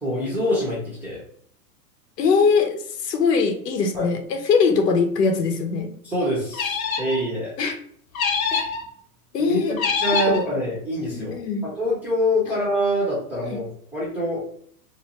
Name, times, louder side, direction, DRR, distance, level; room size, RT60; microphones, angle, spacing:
voice 1, 0.0-1.2 3.9-4.1 6.0-7.5 9.4-13.7 13.9-14.4, equal, 5° right, -6 dB, 0.6 m, -25 dB
voice 2, 2.2-5.9 7.6-7.8 8.5-8.7 9.3-9.8 10.3-10.4 11.1-11.6 12.5-12.6 13.4-13.6, left 5 dB, 80° left, 6 dB, 0.9 m, -22 dB
sound 1, 6.5-7.2 8.1-8.8 9.8-10.4, left 5 dB, 60° left, 0.8 m, -24 dB
3.2 x 2.7 x 2.9 m, 0.63 s
hypercardioid pair, 140°, 47 cm